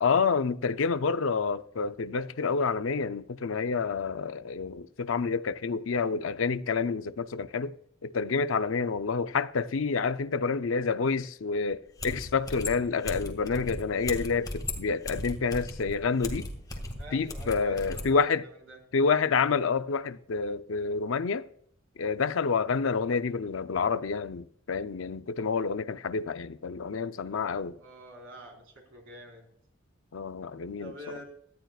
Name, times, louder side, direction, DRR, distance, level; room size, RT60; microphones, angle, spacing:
voice 1, 0.0-7.7 8.0-16.5 17.1-18.5 18.9-21.5 22.0-27.8 30.1-31.2, left 5 dB, 70° left, 0.5 m, -28 dB
sound 1, 12.0-18.1, left 1 dB, 20° left, 2.1 m, -37 dB
voice 2, 17.0-18.8 27.7-29.4 30.8-31.3, equal, 70° right, 4.5 m, -47 dB
18.0 x 13.0 x 2.4 m
head